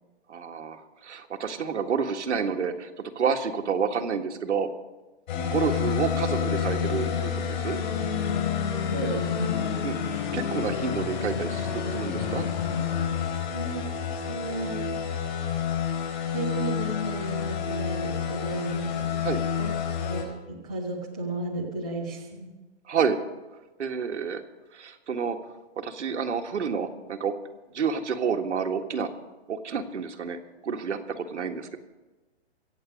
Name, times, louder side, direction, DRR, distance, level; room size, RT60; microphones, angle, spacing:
voice 1, 0.3-4.7 5.5-7.8 9.8-12.5 19.2-19.4 22.9-23.2 23.8-24.4 24.7-25.4 25.8-27.3 27.7-29.1 29.5-31.8, right 6 dB, 90° right, 4 dB, 1.7 m, -29 dB
sound 1, 5.3-20.2, left 7 dB, 40° left, 4.6 m, -29 dB
voice 2, 8.9-9.7 13.5-13.9 14.3-14.8 16.3-19.3 19.6-19.7 20.0-20.2 20.5-22.5, right 2 dB, 5° left, -5 dB, 0.4 m, -33 dB
24.0 x 8.2 x 5.2 m, 1.2 s
hypercardioid pair, 170°, 34 cm